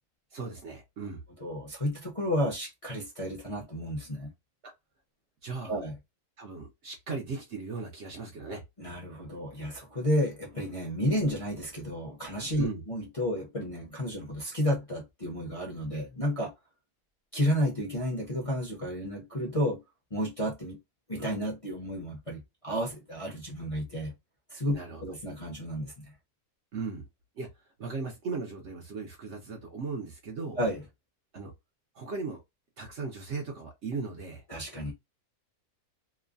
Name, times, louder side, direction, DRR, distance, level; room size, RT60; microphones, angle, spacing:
voice 1, 0.3-1.2 4.6-4.7 5.4-5.8 6.4-8.6 12.6-12.8 24.7-25.0 26.7-27.1 27.4-27.5 27.8-30.6 31.3-31.5 31.9-32.4 32.8-34.4, right 4 dB, 55° right, 0.9 m, -37 dB
voice 2, 1.4-4.3 5.7-6.0 8.8-16.5 17.3-19.8 20.1-20.8 21.1-24.1 24.5-26.1 30.6-30.8 34.5-34.9, equal, 30° left, 0.7 m, -31 dB
3.0 x 2.1 x 2.4 m
omnidirectional pair, 1.6 m